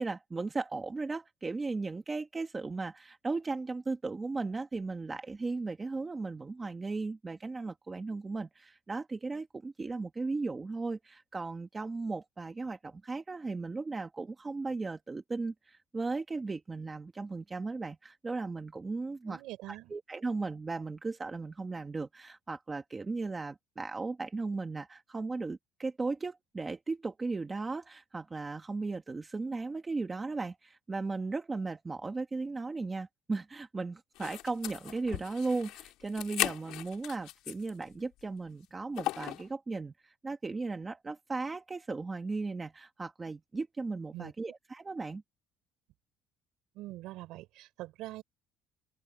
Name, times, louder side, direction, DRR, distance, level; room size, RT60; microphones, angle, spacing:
voice 1, 0.0-19.4 19.7-45.2, right 3 dB, 15° right, 1.3 m, -36 dB
voice 2, 19.3-19.9 44.1-44.3 46.8-48.2, right 17 dB, 65° right, 5.3 m, -43 dB
sound 1, 34.2-37.8 38.2-38.3 39.0-39.5, left 16 dB, 65° left, 3.0 m, -37 dB
open air
cardioid pair, 170°, 0 cm